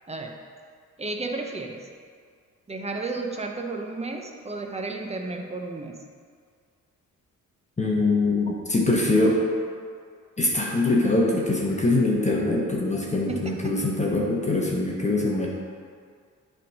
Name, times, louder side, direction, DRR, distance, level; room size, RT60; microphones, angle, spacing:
voice 1, 1.0-1.9 2.7-6.0 13.3-13.6, right 3 dB, 20° right, 3 dB, 0.7 m, -32 dB
voice 2, 7.8-9.4 10.4-15.5, left 2 dB, 20° left, -3 dB, 1.0 m, -23 dB
7.4 x 3.6 x 5.3 m, 2.1 s
cardioid pair, 80°, 31 cm